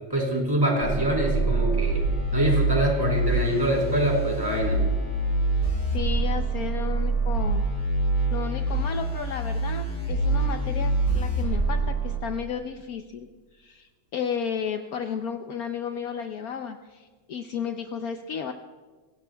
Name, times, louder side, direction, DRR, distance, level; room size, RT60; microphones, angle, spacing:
voice 1, 0.1-2.0 2.3-4.9, right 1 dB, 10° right, -2 dB, 3.7 m, -25 dB
sound 1, 0.8-12.2, right 2 dB, 35° left, 5.6 m, -25 dB
voice 2, 5.9-7.7 8.3-13.3 13.6-18.5, left 7 dB, 75° left, 6 dB, 0.8 m, -33 dB
26.0 x 16.5 x 2.3 m, 1.4 s
omnidirectional pair, 2.3 m